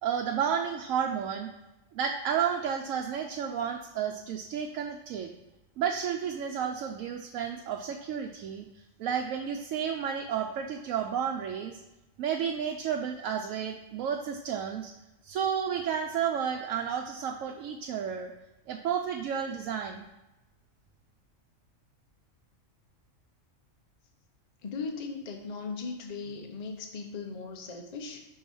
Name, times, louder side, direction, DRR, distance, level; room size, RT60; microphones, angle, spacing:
voice 1, 0.0-1.5 1.9-5.3 5.8-8.7 9.0-11.8 12.2-14.9 15.2-18.3 18.7-20.1, right 8 dB, 90° right, 2 dB, 1.0 m, -31 dB
voice 2, 24.6-28.3, left 4 dB, 40° left, 3 dB, 0.7 m, -38 dB
5.5 x 4.7 x 5.4 m, 0.98 s
omnidirectional pair, 1.4 m